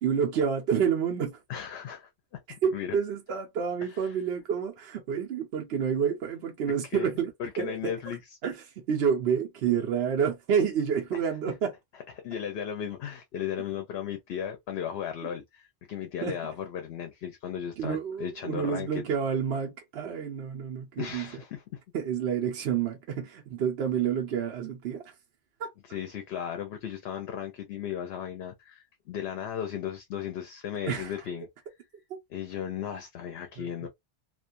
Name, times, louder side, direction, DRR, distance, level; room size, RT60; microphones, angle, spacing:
voice 1, 0.0-1.4 2.6-7.3 7.6-7.9 8.4-11.7 16.2-16.4 17.8-21.3 21.9-25.1 25.6-25.7 30.9-31.2 33.6-33.7, right 7 dB, 75° right, 0.9 m, -29 dB
voice 2, 1.5-2.4 2.7-3.0 3.9-4.1 6.9-7.1 7.4-8.2 11.1-11.2 11.4-11.5 12.2-19.0 21.0-21.8 25.9-31.5 32.3-33.9, left 9 dB, 75° left, 0.8 m, -36 dB
2.5 x 2.2 x 2.5 m
omnidirectional pair, 1.1 m